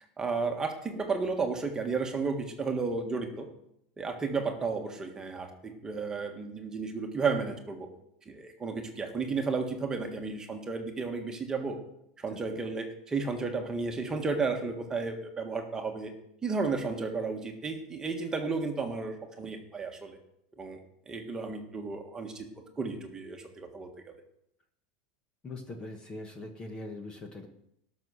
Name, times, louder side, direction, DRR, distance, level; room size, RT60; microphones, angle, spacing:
voice 1, 0.0-3.5 4.0-7.9 8.3-11.8 12.2-16.1 16.4-20.2 20.6-20.8 21.1-22.5 22.8-24.1, right 4 dB, 15° right, 4 dB, 1.5 m, -33 dB
voice 2, 25.4-27.5, left 2 dB, 15° left, 5 dB, 1.2 m, -41 dB
18.0 x 6.3 x 6.4 m, 0.76 s
supercardioid pair, 165°, 5 cm